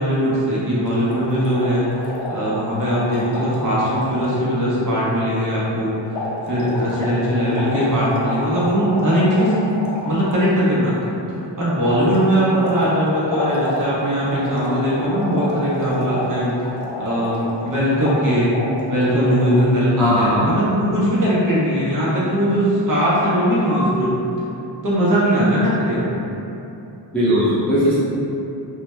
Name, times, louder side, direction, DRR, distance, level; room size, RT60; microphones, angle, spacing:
voice 1, 0.0-9.5 10.0-11.1 11.6-16.7 17.0-18.5 18.9-24.1 24.8-26.1, equal, 45° right, -8 dB, 0.8 m, -20 dB
sound 1, 0.8-4.5 6.1-10.4 11.8-17.7 18.0-18.2 18.5-19.6, left 2 dB, 90° left, 0.6 m, -29 dB
voice 2, 20.0-20.5 23.7-24.1 27.1-28.0, equal, 5° left, -10 dB, 0.3 m, -19 dB
2.7 x 2.2 x 3.1 m, 2.9 s
wide cardioid pair, 160°, 44 cm